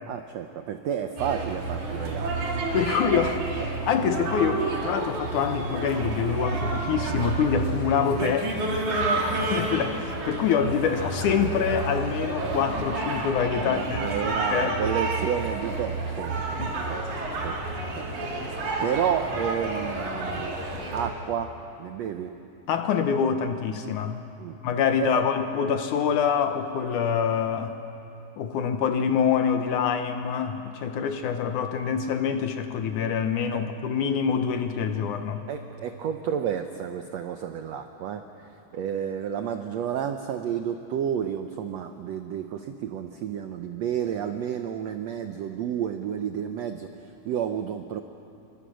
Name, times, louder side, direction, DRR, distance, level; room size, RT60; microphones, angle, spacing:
voice 1, 0.1-2.3 13.5-16.4 16.9-17.0 17.4-17.6 18.0-18.1 18.8-20.5 20.9-21.5 21.8-22.3 24.4-24.6 25.0-25.2 30.9-31.0 35.5-48.0, right 8 dB, 80° right, 7 dB, 1.5 m, -31 dB
sound 1, 1.2-21.1, right 3 dB, 55° right, 4.0 m, -30 dB
voice 2, 2.7-8.5 8.9-9.2 9.5-14.8 16.6-16.7 17.8-17.9 22.7-24.2 24.6-27.7 28.4-35.4, left 7 dB, 70° left, 7 dB, 2.2 m, -26 dB
28.0 x 23.5 x 6.3 m, 2.7 s
omnidirectional pair, 4.1 m